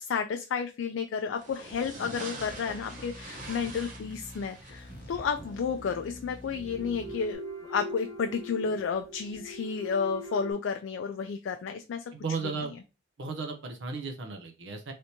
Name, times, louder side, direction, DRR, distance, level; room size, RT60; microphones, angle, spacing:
voice 1, 0.0-12.0 12.4-12.5, left 6 dB, 70° left, 6 dB, 0.3 m, -32 dB
sound 1, 1.3-7.3, right 2 dB, 40° right, 1.0 m, -45 dB
sound 2, 2.3-7.2, left 2 dB, 55° left, 0.8 m, -47 dB
sound 3, 3.3-3.4 5.4-5.9 6.5-10.5, left 1 dB, 20° left, 0.8 m, -41 dB
voice 2, 12.1-12.7 13.2-14.9, right 4 dB, 65° right, 4 dB, 0.6 m, -35 dB
3.3 x 2.7 x 2.8 m, 0.29 s
head